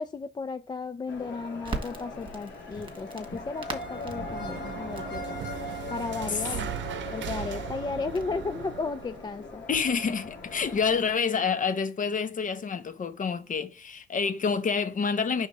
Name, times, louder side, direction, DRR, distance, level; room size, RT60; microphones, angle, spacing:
voice 1, 0.0-5.5 5.9-6.7 7.1-9.6, left 4 dB, 20° left, 0.3 m, -34 dB
sound 1, 1.1-11.1, left 2 dB, 65° left, 1.7 m, -40 dB
Crackle, 1.6-9.6, right 3 dB, 25° right, 1.6 m, -44 dB
sound 2, 3.7-9.2, right 9 dB, 65° right, 0.7 m, -38 dB
voice 2, 9.7-15.5, left 5 dB, 40° left, 0.8 m, -28 dB
5.1 x 3.6 x 5.3 m
cardioid pair, 90°, 20 cm